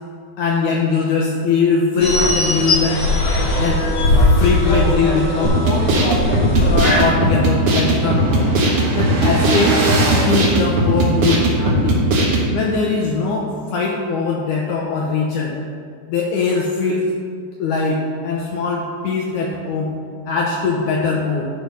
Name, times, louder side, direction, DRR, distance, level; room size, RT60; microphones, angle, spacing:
voice 1, 0.4-3.0 3.6-3.8 4.3-5.6 6.6-8.5 8.9-9.8 10.2-12.0 12.5-15.6 16.1-17.1 17.6-19.9 20.3-21.5, left 4 dB, 80° left, -1 dB, 1.8 m, -21 dB
sound 1, 2.0-7.0, left 1 dB, 60° left, 1.4 m, -18 dB
sound 2, 5.4-12.5, right 1 dB, 60° right, 2.7 m, -17 dB
sound 3, 6.3-6.4 6.6-11.5, right 3 dB, 75° right, 3.9 m, -25 dB
12.0 x 4.2 x 5.4 m, 2.2 s
omnidirectional pair, 4.4 m